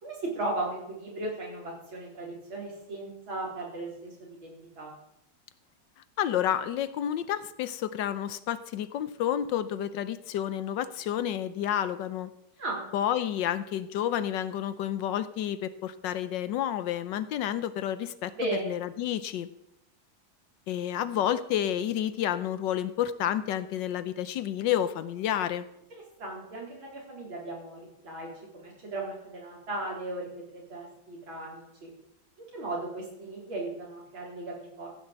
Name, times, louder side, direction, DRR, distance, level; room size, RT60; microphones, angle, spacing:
voice 1, 0.0-4.1 4.4-4.9 12.6-12.8 18.3-18.8 26.2-31.9 32.5-34.9, right 2 dB, 85° right, -3 dB, 4.8 m, -36 dB
voice 2, 6.2-12.3 12.9-18.3 18.6-19.5 20.7-25.6, left 10 dB, 75° left, 14 dB, 1.3 m, -30 dB
15.0 x 6.4 x 7.7 m, 0.81 s
omnidirectional pair, 2.1 m